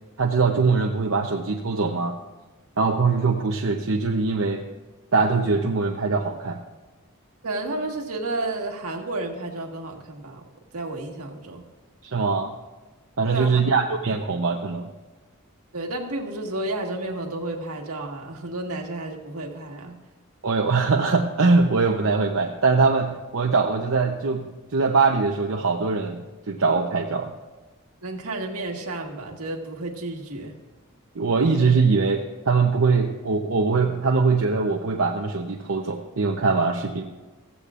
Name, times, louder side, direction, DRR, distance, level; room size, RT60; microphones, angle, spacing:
voice 1, 0.2-2.2 2.8-4.7 5.1-6.6 12.0-12.5 13.2-14.9 20.4-26.2 26.5-27.4 31.1-37.0, right 4 dB, 65° right, 1 dB, 0.8 m, -22 dB
voice 2, 7.4-10.4 10.7-11.7 13.3-13.8 15.7-20.0 28.0-30.5, right 2 dB, 85° right, 2 dB, 1.7 m, -31 dB
15.5 x 15.0 x 2.5 m, 1.2 s
head